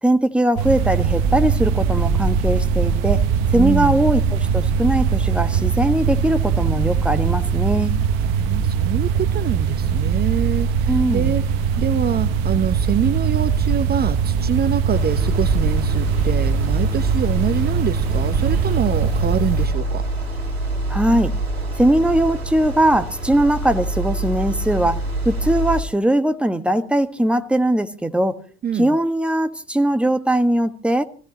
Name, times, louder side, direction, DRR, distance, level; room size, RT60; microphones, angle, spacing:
voice 1, 0.0-3.2 3.5-7.9 10.9-11.4 20.9-21.3 21.8-28.4 28.7-31.0, right 1 dB, 5° right, 1.5 m, -20 dB
sound 1, 0.6-19.7, right 6 dB, 60° right, 1.3 m, -21 dB
voice 2, 3.5-4.0 8.2-11.4 11.8-20.0 28.6-29.0, right 8 dB, 30° right, 0.9 m, -25 dB
sound 2, 14.9-25.8, right 2 dB, 85° right, 2.6 m, -26 dB
25.0 x 16.5 x 3.0 m
figure-of-eight pair, 60°, 31 cm